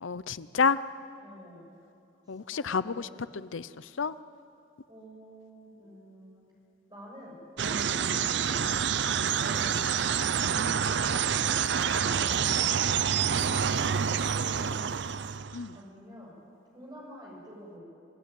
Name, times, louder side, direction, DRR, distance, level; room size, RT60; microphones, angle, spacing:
voice 1, 0.0-0.8 2.3-4.1 10.4-10.8 15.5-15.8, left 5 dB, 85° left, 16 dB, 0.7 m, -30 dB
voice 2, 1.2-1.7 2.3-3.3 4.9-6.5 6.9-9.8 10.8-11.2 11.6-14.8 15.7-16.3 16.7-17.8, equal, 20° right, -3 dB, 7.1 m, -48 dB
sound 1, 7.6-15.7, right 7 dB, 65° right, 0.5 m, -27 dB
27.0 x 17.0 x 9.2 m, 2.6 s
head